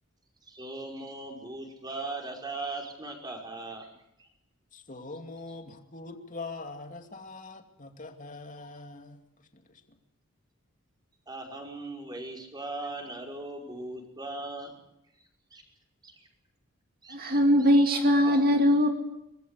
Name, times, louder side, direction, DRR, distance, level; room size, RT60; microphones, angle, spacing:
voice 1, 0.4-3.9 4.2-4.3 11.3-14.8 15.2-15.6 16.0-16.3 17.0-17.4 18.3-18.6, right 2 dB, 20° right, 5.4 m, -39 dB
voice 2, 4.7-10.0, left 3 dB, 40° left, 2.6 m, -43 dB
voice 3, 17.1-18.9, equal, 45° right, 2.4 m, -21 dB
24.0 x 20.5 x 8.3 m
head